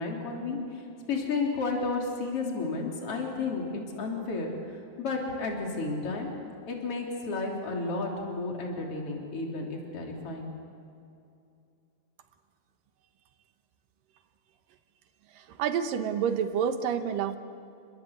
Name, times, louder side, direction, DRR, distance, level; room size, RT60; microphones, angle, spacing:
voice 1, 0.0-4.5 5.0-6.3 6.7-10.5, left 3 dB, 45° left, 0 dB, 4.2 m, -32 dB
voice 2, 15.4-17.4, right 8 dB, 90° right, 8 dB, 2.9 m, -28 dB
30.0 x 21.0 x 8.3 m, 2.6 s
omnidirectional pair, 3.8 m